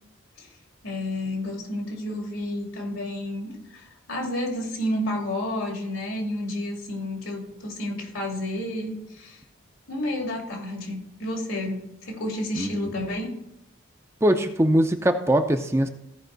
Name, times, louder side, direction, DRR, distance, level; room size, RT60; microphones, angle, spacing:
voice 1, 0.8-9.4 9.9-13.3, left 1 dB, 80° left, 1 dB, 2.6 m, -31 dB
voice 2, 12.6-12.9 14.2-15.9, right 1 dB, 15° right, 6 dB, 0.5 m, -22 dB
16.0 x 5.3 x 4.0 m, 0.80 s
head